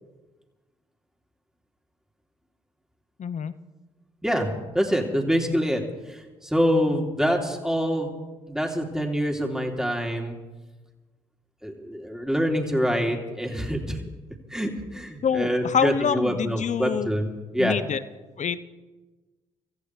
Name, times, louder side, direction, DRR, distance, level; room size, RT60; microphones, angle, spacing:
voice 1, 3.2-3.5 15.2-17.1 17.6-18.0 18.4-18.6, left 7 dB, 50° left, 14 dB, 0.8 m, -26 dB
voice 2, 4.2-5.8 6.1-8.1 8.5-10.4 11.6-14.0 14.5-17.7, equal, 5° right, 1 dB, 3.2 m, -25 dB
26.5 x 14.5 x 3.3 m, 1.2 s
hypercardioid pair, 50°, 16 cm